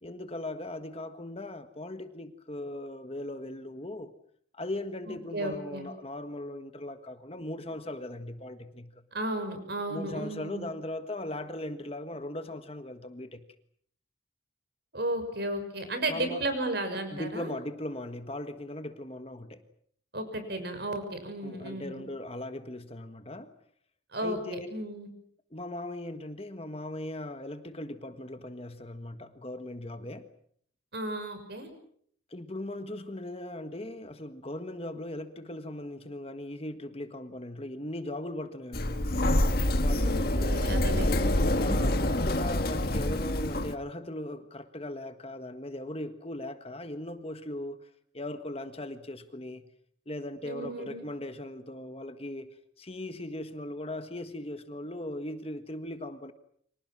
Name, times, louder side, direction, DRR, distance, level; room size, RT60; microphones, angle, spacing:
voice 1, 0.0-4.1 4.5-8.9 9.9-13.4 16.1-16.4 17.1-19.6 21.4-23.5 24.2-24.7 25.5-30.3 32.3-39.1 39.8-40.5 41.6-47.9 48.1-49.6 50.0-56.3, left 1 dB, 30° left, 8 dB, 1.6 m, -39 dB
voice 2, 5.1-5.9 9.1-10.7 14.9-17.5 20.1-22.1 24.1-25.1 30.9-31.7 40.0-41.9 50.4-51.1, right 1 dB, 55° right, 8 dB, 6.2 m, -34 dB
Sliding door, 38.7-43.7, left 1 dB, 50° left, 1.7 m, -26 dB
30.0 x 25.5 x 6.1 m, 0.64 s
head